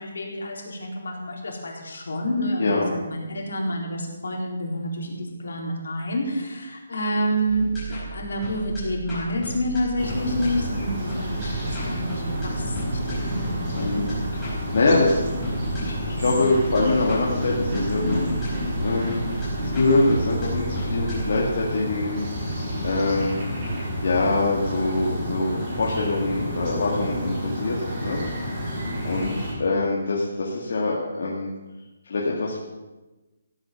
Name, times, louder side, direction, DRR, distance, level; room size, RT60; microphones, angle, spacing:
voice 1, 0.0-14.0, equal, 75° left, -1 dB, 4.3 m, -29 dB
voice 2, 2.6-2.9 13.8-15.2 15.8-18.5 18.8-19.2 19.6-23.4 24.0-27.8 28.0-28.6 29.0-31.5 32.1-32.6, left 2 dB, 50° left, -3 dB, 2.2 m, -24 dB
sound 1, 7.5-24.6, right 2 dB, 10° left, 5.2 m, -35 dB
sound 2, 10.0-29.5, equal, 25° right, 4.4 m, -29 dB
16.5 x 8.7 x 7.0 m, 1.1 s
hypercardioid pair, 180°, 0 cm